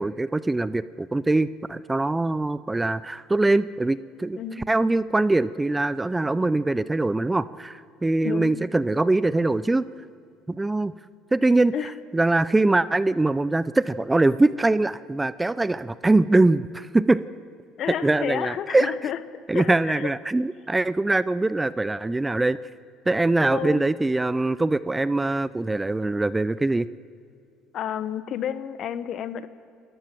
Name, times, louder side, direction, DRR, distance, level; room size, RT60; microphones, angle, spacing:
voice 1, 0.0-4.4 4.7-9.8 10.5-10.9 11.3-11.7 12.1-17.2 18.0-18.9 19.5-22.6 23.1-26.9, right 2 dB, 15° right, 17 dB, 0.5 m, -22 dB
voice 2, 8.2-8.6 11.7-11.9 17.8-19.2 19.5-20.1 23.5-23.9 27.7-29.5, left 9 dB, 55° left, 14 dB, 1.2 m, -30 dB
28.5 x 13.5 x 7.6 m, 2.4 s
supercardioid pair, 100°, 0 cm